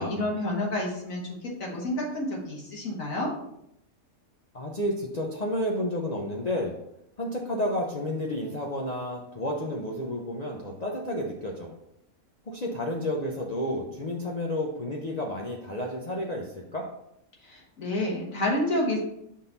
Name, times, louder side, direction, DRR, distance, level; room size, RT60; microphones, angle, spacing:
voice 1, 0.0-3.3 17.4-19.0, left 1 dB, 65° left, -2 dB, 1.7 m, -29 dB
voice 2, 4.5-6.8 7.2-11.7 12.5-16.9, left 1 dB, 45° left, -1 dB, 0.6 m, -31 dB
6.3 x 3.9 x 4.0 m, 0.79 s
omnidirectional pair, 1.5 m